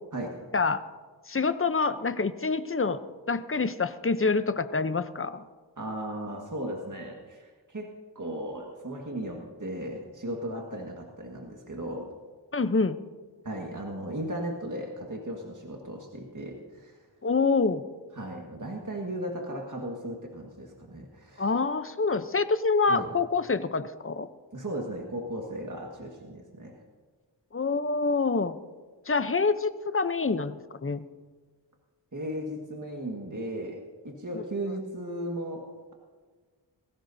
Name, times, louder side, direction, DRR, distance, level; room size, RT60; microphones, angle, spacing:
voice 1, 0.5-0.8 1.3-3.0 3.3-5.4 12.5-13.0 17.2-17.8 21.4-24.3 27.5-28.6 29.1-31.0 34.3-34.4, left 4 dB, 30° left, 12 dB, 0.7 m, -26 dB
voice 2, 5.8-12.1 13.4-17.0 18.1-21.6 22.9-23.1 24.5-26.8 32.1-35.9, right 1 dB, 40° right, 0 dB, 1.7 m, -36 dB
20.5 x 16.5 x 2.7 m, 1.4 s
wide cardioid pair, 45°, 45 cm